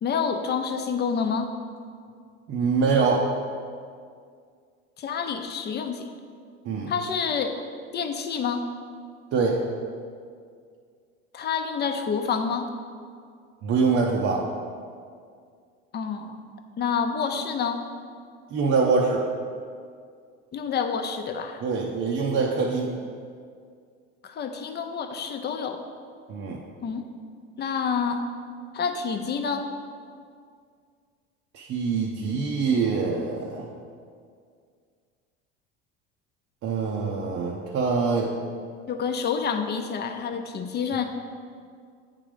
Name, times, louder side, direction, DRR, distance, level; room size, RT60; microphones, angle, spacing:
voice 1, 0.0-1.5 5.0-6.1 6.9-7.5 7.9-8.6 11.3-12.7 15.9-16.4 16.8-17.8 20.5-21.6 24.2-25.8 26.8-27.0 27.6-28.2 28.7-29.7 38.9-41.1, left 6 dB, 35° left, 6 dB, 0.7 m, -28 dB
voice 2, 2.5-3.3 6.6-6.9 9.3-9.6 13.6-14.5 18.5-19.3 21.6-22.9 26.3-26.6 31.5-33.7 36.6-38.3, right 4 dB, 45° right, -2 dB, 0.8 m, -24 dB
8.5 x 3.7 x 5.0 m, 2.2 s
supercardioid pair, 95°, 31 cm